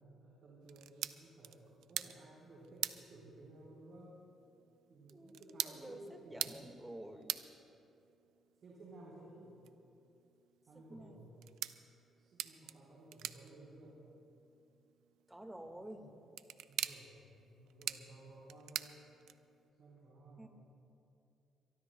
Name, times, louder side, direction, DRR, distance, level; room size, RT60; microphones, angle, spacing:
voice 1, 0.0-4.2 4.9-6.5 8.6-9.5 10.7-11.4 12.2-14.0 16.7-19.0 19.8-20.5, right 2 dB, 60° right, -5 dB, 4.3 m, -56 dB
sound 1, 0.6-19.7, right 12 dB, 90° right, 0.4 m, -46 dB
voice 2, 5.1-6.0 6.3-7.4 10.8-11.2 15.3-16.1 20.4-20.5, right 1 dB, 10° right, 5 dB, 1.7 m, -50 dB
23.5 x 22.5 x 2.2 m, 2.7 s
cardioid pair, 90°, 0 cm